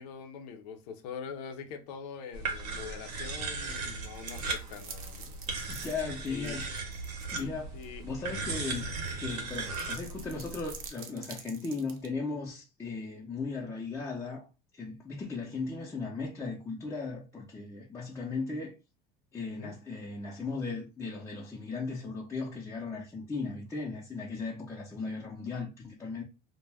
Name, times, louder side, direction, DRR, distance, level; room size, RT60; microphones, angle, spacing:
voice 1, 0.0-5.4 6.3-6.6 7.3-8.0 8.4-8.6 19.6-19.7, left 6 dB, 85° left, 0.6 m, -44 dB
sound 1, 2.3-10.9, right 3 dB, 90° right, 0.9 m, -37 dB
sound 2, 3.9-7.5 7.8-7.9 8.8-12.1, right 6 dB, 45° right, 0.6 m, -47 dB
voice 2, 5.7-6.6 7.3-7.7 8.0-8.9 9.2-14.5 14.7-18.7 19.3-26.2, left 4 dB, 15° left, 0.5 m, -37 dB
2.2 x 2.1 x 3.3 m
supercardioid pair, 120°, 20 cm